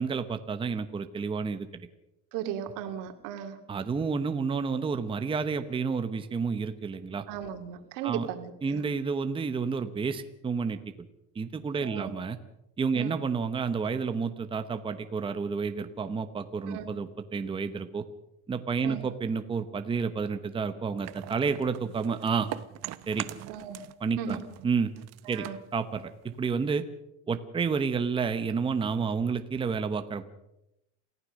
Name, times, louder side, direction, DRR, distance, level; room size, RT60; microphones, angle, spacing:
voice 1, 0.0-1.7 3.7-7.3 8.0-8.3 8.6-10.8 11.3-12.4 12.8-18.0 18.5-22.5 23.1-23.3 24.0-24.4 24.6-24.9 25.3-25.5 25.7-26.8 27.3-30.2, right 5 dB, 15° right, 8 dB, 1.0 m, -30 dB
voice 2, 2.3-3.6 7.3-8.8 11.8-12.1 12.9-13.1 16.7-16.8 18.8-19.1 23.5-23.8 24.2-24.4 25.2-25.6, right 9 dB, 75° right, 7 dB, 2.7 m, -36 dB
sound 1, 21.0-24.0 24.3-26.6, right 15 dB, 50° right, 1.0 m, -42 dB
28.0 x 15.0 x 6.4 m, 0.87 s
cardioid pair, 155°, 33 cm